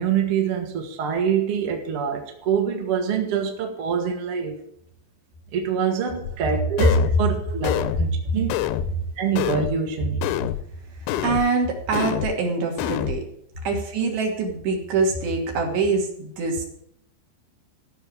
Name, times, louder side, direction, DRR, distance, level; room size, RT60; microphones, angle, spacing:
voice 1, 0.0-4.6 5.5-8.5 9.2-10.5, right 7 dB, 45° right, 2 dB, 1.9 m, -25 dB
sound 1, 6.2-6.4 6.8-7.2 7.6-8.1 8.5-8.9 9.4-9.8 10.2-10.6 11.1-11.5 11.9-12.4 12.8-13.2, left 13 dB, 85° left, 3.0 m, -26 dB
voice 2, 11.2-13.3 13.6-16.6, right 4 dB, 70° right, 1 dB, 4.7 m, -24 dB
15.0 x 6.0 x 8.8 m, 0.70 s
omnidirectional pair, 5.3 m